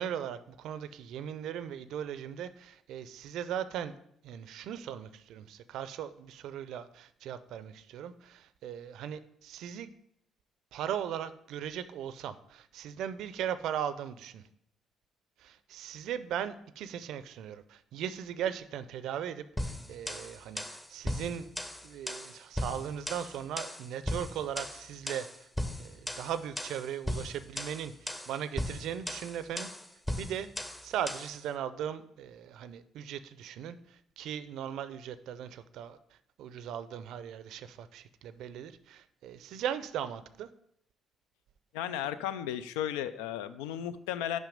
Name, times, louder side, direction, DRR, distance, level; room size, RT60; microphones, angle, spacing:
voice 1, 0.0-4.0 4.2-9.9 10.7-14.4 15.4-20.6 20.9-21.5 21.8-25.5 25.8-29.7 30.2-30.5 30.8-40.5, right 9 dB, 75° right, 14 dB, 0.4 m, -38 dB
sound 1, 19.6-31.4, left 1 dB, 15° left, 0.8 m, -38 dB
voice 2, 41.7-44.4, left 10 dB, 85° left, 13 dB, 0.3 m, -34 dB
5.9 x 5.5 x 5.1 m, 0.72 s
supercardioid pair, 60°, 0 cm